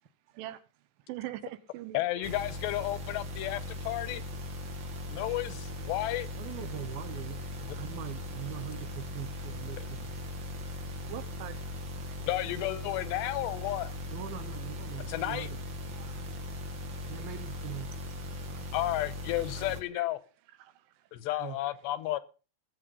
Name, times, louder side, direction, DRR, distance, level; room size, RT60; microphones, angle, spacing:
voice 1, 1.1-2.3 11.1-11.5 20.0-20.1, right 14 dB, 90° right, 3.6 m, -41 dB
voice 2, 1.9-4.2 5.1-6.3 12.3-13.9 15.1-15.5 18.7-20.2 21.1-22.2, left 15 dB, 75° left, 3.0 m, -32 dB
sound 1, 2.2-19.8, left 2 dB, 45° right, 1.5 m, -39 dB
voice 3, 6.3-10.2 14.1-15.6 17.1-17.9 21.4-21.6, right 12 dB, 65° right, 2.6 m, -42 dB
19.0 x 8.6 x 5.5 m
omnidirectional pair, 5.3 m